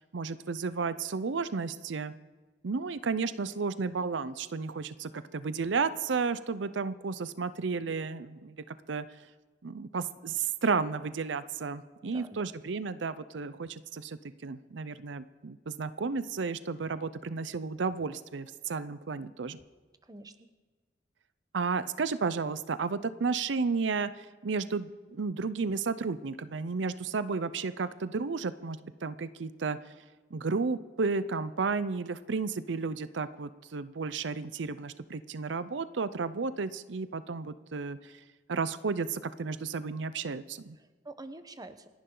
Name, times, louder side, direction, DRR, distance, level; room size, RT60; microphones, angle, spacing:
voice 1, 0.1-2.1 2.6-9.1 9.6-19.6 21.5-29.8 30.3-38.1 38.5-40.8, right 4 dB, 80° right, 14 dB, 0.6 m, -33 dB
voice 2, 12.0-12.5 20.0-20.5 40.8-41.9, right 2 dB, 20° right, 9 dB, 1.0 m, -47 dB
28.5 x 11.0 x 3.9 m, 1.3 s
head